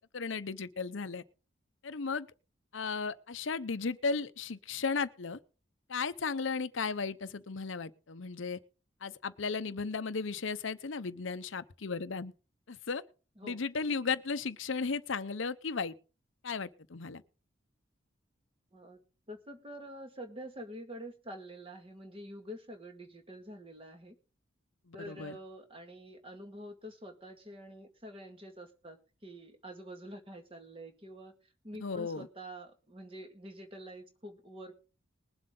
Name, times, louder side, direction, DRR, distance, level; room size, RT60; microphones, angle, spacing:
voice 1, 0.1-1.2 1.8-2.3 2.7-5.4 5.9-8.6 9.0-12.3 12.7-13.0 13.4-15.9 16.4-17.2 24.9-25.4 31.8-32.3, left 4 dB, 75° left, 0.7 m, -35 dB
voice 2, 19.3-24.2 24.9-31.3 31.6-34.8, equal, 25° right, 2.0 m, -47 dB
21.0 x 7.7 x 3.8 m
head